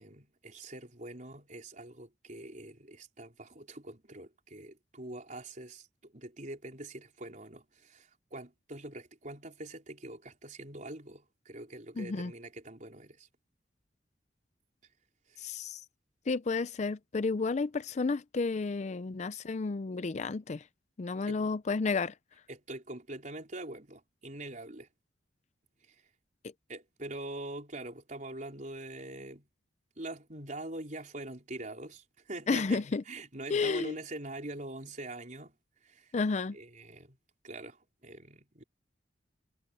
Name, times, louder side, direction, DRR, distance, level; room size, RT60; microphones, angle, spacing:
voice 1, 0.0-13.3 15.3-15.5 21.3-21.4 22.5-24.9 25.8-26.1 26.7-29.5 30.0-35.5 35.8-36.1 36.5-37.2 37.4-38.6, right 2 dB, 45° right, 4.5 m, -44 dB
voice 2, 12.0-12.3 15.4-15.8 16.3-20.6 21.0-22.1 32.5-33.0 33.5-33.9 36.1-36.6, left 4 dB, 40° left, 0.4 m, -31 dB
head